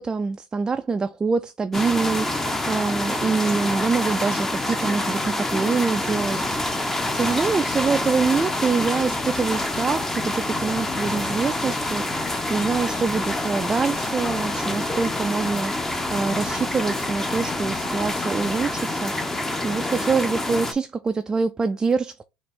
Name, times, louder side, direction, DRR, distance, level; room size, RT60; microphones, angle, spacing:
voice 1, 0.0-6.5 6.8-12.2 12.5-15.7 16.1-22.2, right 4 dB, 20° right, 0.3 m, -25 dB
sound 1, 1.7-20.7, left 1 dB, 15° left, 0.6 m, -27 dB
sound 2, 6.2-18.7, left 5 dB, 50° left, 1.3 m, -47 dB
4.1 x 2.5 x 3.6 m
hypercardioid pair, 80°, 3 cm